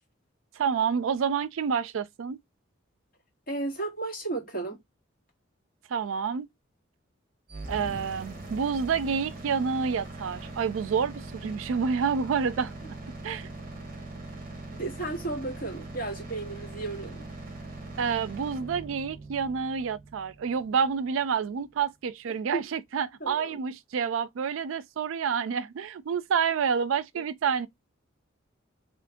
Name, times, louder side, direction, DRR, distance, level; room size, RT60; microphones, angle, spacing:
voice 1, 0.6-2.4 5.9-6.5 7.7-12.7 13.2-13.5 18.0-27.7, right 6 dB, 85° right, 0.4 m, -28 dB
voice 2, 3.5-4.8 14.7-17.3 22.5-22.6 23.2-23.6 27.1-27.2, right 2 dB, 45° left, 1.9 m, -34 dB
sound 1, 7.5-21.4, right 2 dB, 45° right, 0.9 m, -41 dB
3.0 x 2.5 x 3.5 m
head